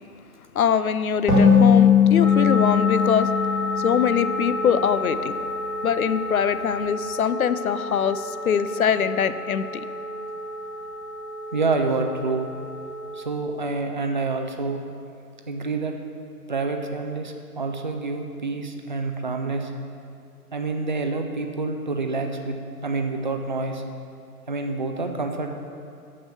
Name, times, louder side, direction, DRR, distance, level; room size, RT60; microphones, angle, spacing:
voice 1, 0.5-3.3 3.8-5.3 5.8-9.8, left 8 dB, 65° left, 13 dB, 0.5 m, -23 dB
sound 1, 1.3-4.8, left 7 dB, ahead, 1.4 m, -18 dB
sound 2, 2.2-13.2, left 1 dB, 90° left, 1.6 m, -31 dB
voice 2, 11.5-12.5 13.1-14.8 15.5-16.0 16.5-19.7 20.5-23.8 24.5-25.5, right 3 dB, 35° right, 4 dB, 0.4 m, -27 dB
6.6 x 6.5 x 7.0 m, 2.5 s
figure-of-eight pair, 135°, 46 cm